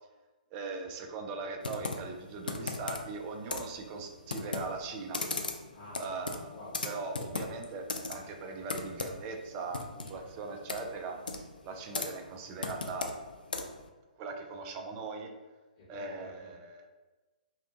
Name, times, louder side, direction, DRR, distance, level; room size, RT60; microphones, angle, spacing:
voice 1, 0.5-5.3 6.0-6.6 6.8-11.2 11.6-13.2 14.2-15.3 15.9-16.9, right 4 dB, 30° right, 4 dB, 0.3 m, -40 dB
Computer keyboard, 1.6-13.9, left 3 dB, 80° left, 0.3 m, -39 dB
voice 2, 5.7-6.0 6.5-6.8 10.0-10.3 15.9-16.5, left 1 dB, 35° left, -9 dB, 1.0 m, -50 dB
2.7 x 2.2 x 2.6 m, 1.2 s
figure-of-eight pair, 125°, 5 cm